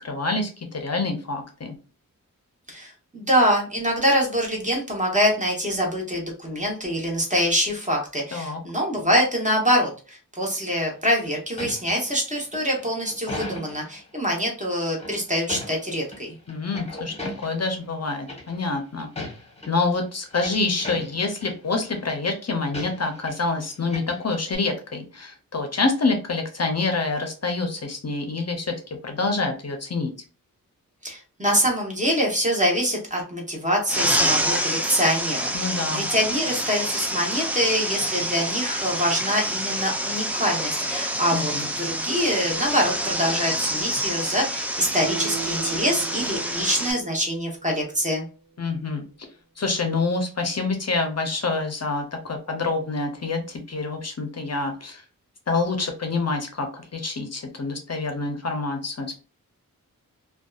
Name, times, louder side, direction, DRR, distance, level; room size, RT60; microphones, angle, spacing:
voice 1, 0.0-1.7 8.3-8.6 16.5-17.1 17.4-19.1 19.7-28.7 29.0-30.1 35.5-36.0 41.3-41.7 48.6-49.0 49.6-55.0 55.5-59.2, left 3 dB, 50° left, 4 dB, 0.5 m, -27 dB
voice 2, 2.7-16.4 31.0-48.2, equal, 20° right, -1 dB, 0.9 m, -25 dB
stepping down into the dungeon, 10.9-14.0 14.9-16.2 16.5-17.7 18.3-18.7 19.0-19.7 20.1-21.5 21.8-22.1 22.7-23.5 23.8-24.6, left 1 dB, 20° left, 0.9 m, -37 dB
sound 1, 33.9-46.9, equal, 5° right, 0.4 m, -27 dB
Guitar, 45.0-48.3 48.6-48.7, right 10 dB, 65° right, 0.7 m, -38 dB
2.6 x 2.2 x 2.3 m, 0.35 s
wide cardioid pair, 85°, 34 cm